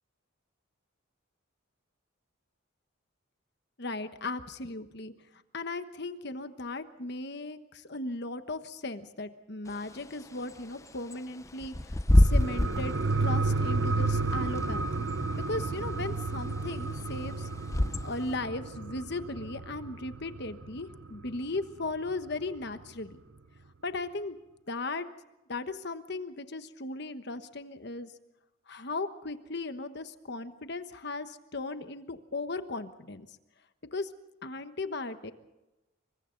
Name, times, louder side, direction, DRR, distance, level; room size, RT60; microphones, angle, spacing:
voice 1, 3.8-5.1 5.5-12.9 13.2-15.1 15.3-17.5 18.0-23.2 23.8-24.4 24.7-25.0 25.5-28.1 28.7-33.3 33.9-34.1 34.4-35.3, left 2 dB, 55° left, 9 dB, 1.2 m, -37 dB
Bird / Wind, 9.7-18.4, left 1 dB, 15° left, 0.6 m, -29 dB
sound 1, 12.1-21.2 21.6-21.7, right 3 dB, 65° right, 0.9 m, -32 dB
28.5 x 24.5 x 4.0 m, 0.99 s
head